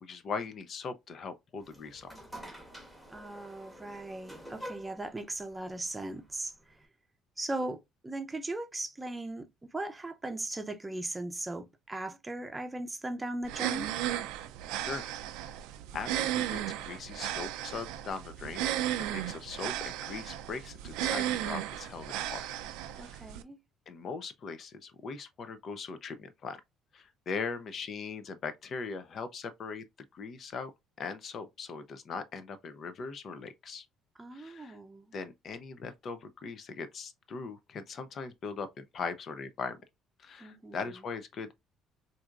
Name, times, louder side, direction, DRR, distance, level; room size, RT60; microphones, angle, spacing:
voice 1, 0.0-2.1 14.9-15.0 15.4-15.6 15.9-18.6 19.0-22.5 22.9-23.3 23.9-26.6 26.9-29.8 30.1-30.7 31.0-33.9 34.3-34.8 35.1-39.8 40.2-41.5, left 5 dB, 50° left, 0.6 m, -40 dB
sound 1, 1.6-6.9, equal, 5° left, 1.2 m, -48 dB
voice 2, 3.1-6.8 7.4-13.9 23.0-23.6 34.2-35.1 40.4-41.0, right 2 dB, 15° right, 0.6 m, -38 dB
sound 2, 13.4-23.4, right 12 dB, 85° right, 0.4 m, -35 dB
4.2 x 2.6 x 2.4 m
cardioid pair, 95°, 0 cm